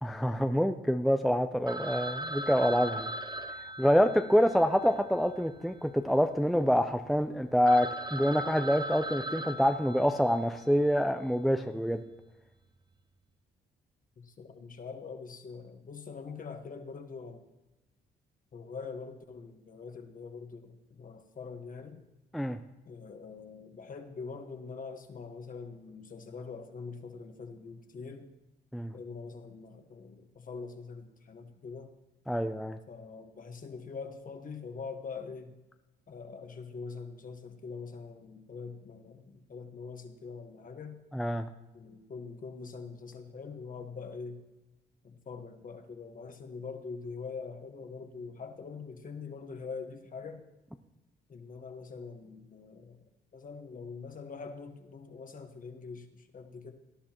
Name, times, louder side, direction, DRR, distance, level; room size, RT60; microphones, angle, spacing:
voice 1, 0.0-3.1 3.8-12.0 22.3-22.6 28.7-28.9 32.3-32.8 41.1-41.5, equal, ahead, 7 dB, 0.5 m, -26 dB
Telephone, 1.7-6.0 6.3-6.4 6.9-7.0 7.4-7.5 7.7-10.6, right 1 dB, 20° right, 0.9 m, -39 dB
voice 2, 14.2-17.5 18.5-22.0 22.9-28.3 28.9-31.9 32.9-35.6 36.1-41.0 41.7-44.4 45.0-50.4 51.3-53.0 53.3-56.7, left 5 dB, 45° left, 6 dB, 1.4 m, -43 dB
18.5 x 11.0 x 3.0 m, 1.0 s
cardioid pair, 90°, 20 cm